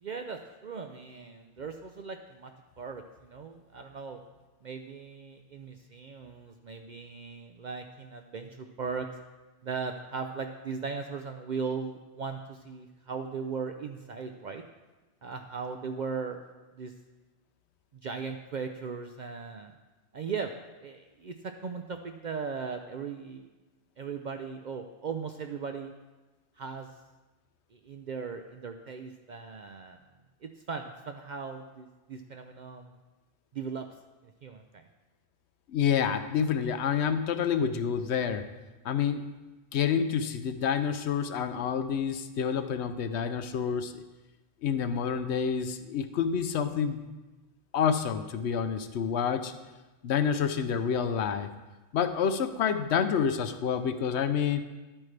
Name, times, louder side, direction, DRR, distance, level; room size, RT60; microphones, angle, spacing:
voice 1, 0.0-4.2 4.6-9.1 9.6-14.6 15.2-16.4 16.7-16.9 18.0-19.7 20.1-20.5 20.8-23.5 24.0-25.9 26.6-26.9 27.7-30.0 30.4-32.9 33.5-33.9 34.4-34.9, right 5 dB, 55° right, 5 dB, 0.5 m, -38 dB
voice 2, 35.7-38.4 38.8-39.3 39.7-44.0 44.6-47.1 47.7-49.5 50.0-51.5 51.9-54.6, left 7 dB, 70° left, 10 dB, 0.9 m, -28 dB
11.0 x 8.8 x 3.3 m, 1.1 s
omnidirectional pair, 1.2 m